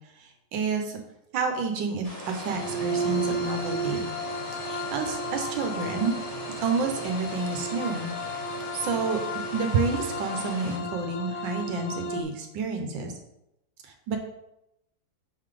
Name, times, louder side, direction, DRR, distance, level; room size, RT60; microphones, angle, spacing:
voice 1, 0.2-1.0 1.3-4.0 4.6-6.1 6.6-8.1 8.7-9.2 9.5-13.1 13.8-14.2, right 4 dB, 80° right, 4 dB, 1.5 m, -29 dB
sound 1, 2.0-10.8, equal, 25° left, 1.1 m, -41 dB
sound 2, 2.4-12.2, right 1 dB, 55° left, 0.8 m, -33 dB
6.3 x 3.8 x 4.9 m, 0.85 s
omnidirectional pair, 2.0 m